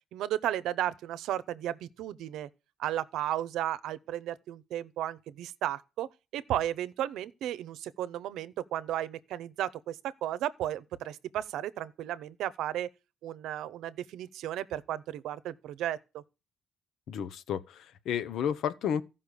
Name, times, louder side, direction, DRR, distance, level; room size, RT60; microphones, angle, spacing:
voice 1, 0.1-2.5 2.8-12.9 13.2-16.2, right 12 dB, 85° right, 0.8 m, -34 dB
voice 2, 17.1-19.0, left 8 dB, 75° left, 1.0 m, -32 dB
14.5 x 5.6 x 6.7 m
cardioid pair, 90°, 0 cm